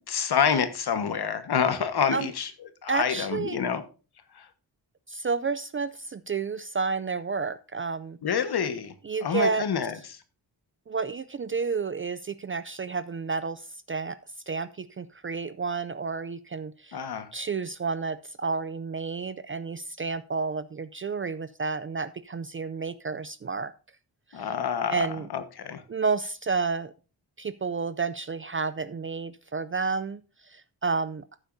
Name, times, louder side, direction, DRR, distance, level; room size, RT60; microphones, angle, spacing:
voice 1, 0.1-2.5 2.8-3.8 4.3-4.5 8.2-8.9 9.2-10.2 16.9-17.3 24.3-25.8, left 7 dB, 65° left, 10 dB, 1.4 m, -27 dB
voice 2, 2.9-3.6 5.1-8.2 9.0-9.7 10.9-14.2 14.5-17.0 17.3-23.7 24.3-24.5 24.9-25.3 25.9-26.9 27.4-31.2, right 4 dB, 30° right, 14 dB, 0.4 m, -30 dB
14.0 x 8.0 x 2.6 m, 0.34 s
wide cardioid pair, 145°, 41 cm